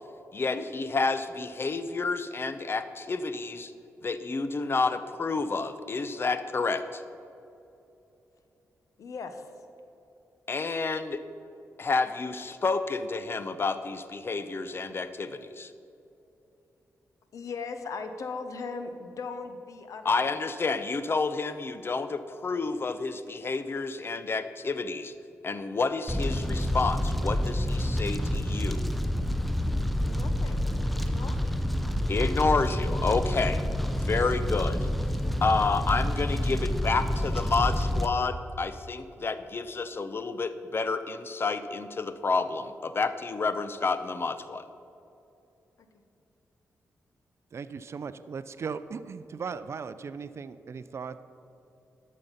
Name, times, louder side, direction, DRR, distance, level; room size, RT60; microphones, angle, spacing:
voice 1, 0.3-3.7 4.0-7.0 10.5-11.2 11.8-15.7 20.0-25.1 25.4-28.9 32.1-33.6 33.9-34.8 35.4-44.6, left 4 dB, 45° left, 11 dB, 0.7 m, -29 dB
voice 2, 9.0-9.4 17.3-20.1 20.7-20.8 30.0-31.6, left 4 dB, 75° left, 8 dB, 0.9 m, -39 dB
Fire, 26.1-38.1, left 1 dB, ahead, 0.7 m, -28 dB
voice 3, 47.5-51.2, right 5 dB, 55° right, 13 dB, 0.5 m, -38 dB
12.0 x 6.5 x 5.7 m, 2.8 s
cardioid pair, 75°, 6 cm